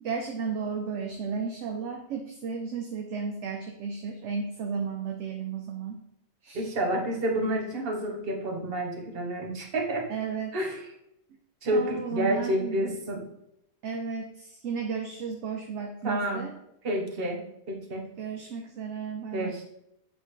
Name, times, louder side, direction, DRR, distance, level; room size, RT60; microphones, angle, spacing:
voice 1, 0.0-6.0 6.4-6.7 10.1-10.5 11.7-13.0 13.8-16.5 18.2-19.5, right 5 dB, 65° right, 4 dB, 0.9 m, -34 dB
voice 2, 6.5-10.1 10.5-10.9 11.6-13.3 16.0-16.5 16.8-18.1 19.3-19.6, right 1 dB, 45° right, 2 dB, 1.2 m, -29 dB
8.0 x 3.9 x 3.1 m, 0.80 s
omnidirectional pair, 1.5 m